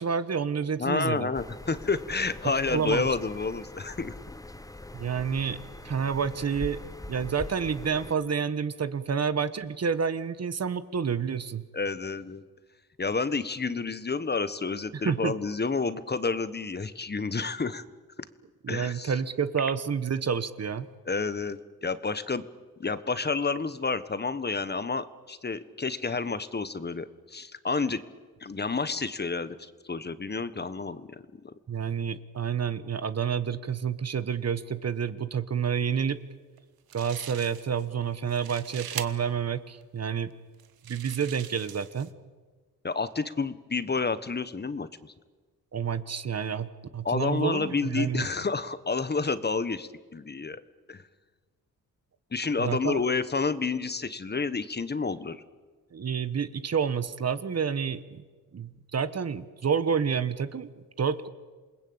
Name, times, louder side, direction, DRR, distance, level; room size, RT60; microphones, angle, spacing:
voice 1, 0.0-1.3 2.7-3.1 4.9-5.6 5.8-6.8 7.1-11.6 14.9-15.3 18.6-20.9 31.7-36.2 36.9-40.3 40.8-42.1 45.7-46.7 46.9-48.3 52.6-53.0 55.9-58.2 58.5-60.7 61.0-61.3, right 7 dB, 45° right, 13 dB, 1.3 m, -29 dB
voice 2, 0.8-4.1 11.7-12.4 13.0-17.8 18.7-19.1 21.1-22.4 22.8-28.0 28.4-31.5 42.8-45.1 47.0-50.6 50.9-51.0 52.3-55.4, left 4 dB, 30° left, 13 dB, 1.3 m, -30 dB
sound 1, 1.3-8.2, left 2 dB, 10° left, 1.0 m, -42 dB
sound 2, 36.6-36.7 36.9-37.9 38.2-39.1 39.8-39.9 40.6-42.1, right 10 dB, 80° right, 1.5 m, -41 dB
28.0 x 20.0 x 8.8 m, 1.4 s
cardioid pair, 85°, 36 cm